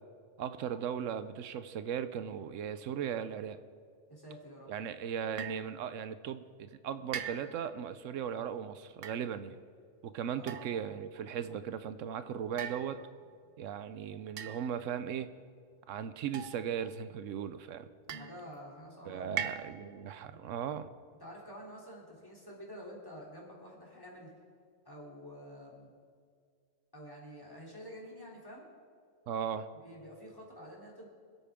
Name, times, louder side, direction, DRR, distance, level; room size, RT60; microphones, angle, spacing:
voice 1, 0.4-3.6 4.7-9.6 10.0-13.0 13.6-15.3 15.9-17.9 19.1-20.9 29.3-29.7, right 8 dB, 90° right, 12 dB, 1.0 m, -37 dB
voice 2, 4.1-4.7 10.4-10.6 18.1-19.4 20.3-20.4 21.2-24.3 24.8-25.9 26.9-28.7 29.8-31.1, equal, 15° left, -3 dB, 3.0 m, -49 dB
sound 1, 5.4-5.7 7.1-7.7 8.9-9.2 10.5-11.0 12.6-13.3 14.4-14.9 16.3-16.9 18.1-18.6 19.4-20.0, right 8 dB, 55° right, 0.8 m, -41 dB
25.5 x 8.6 x 3.6 m, 2.1 s
omnidirectional pair, 1.3 m